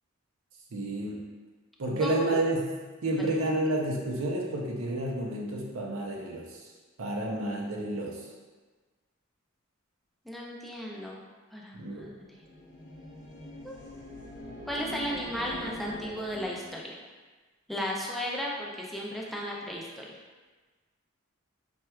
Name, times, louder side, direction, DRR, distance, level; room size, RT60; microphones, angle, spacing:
voice 1, 0.7-1.2 1.8-2.7 3.0-6.5 7.0-8.2 11.7-12.1, right 1 dB, 70° right, -1 dB, 0.6 m, -30 dB
voice 2, 10.3-11.2 11.5-12.3 13.6-13.8 14.7-17.0 17.7-20.2, equal, ahead, -3 dB, 0.4 m, -35 dB
sound 1, 12.2-16.8, left 1 dB, 65° left, 0.6 m, -43 dB
4.3 x 2.2 x 2.2 m, 1.3 s
head